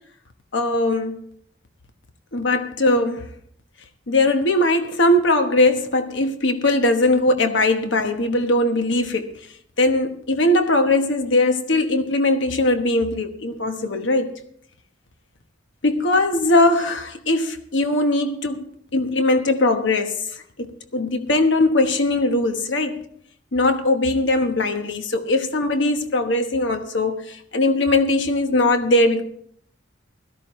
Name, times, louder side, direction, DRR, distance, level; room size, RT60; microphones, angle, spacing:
voice 1, 0.5-1.2 2.3-3.3 4.1-9.3 9.8-14.3 15.8-20.2 20.6-23.1 23.5-29.2, left 2 dB, 65° left, 1.1 m, -20 dB
17.0 x 13.0 x 3.1 m
head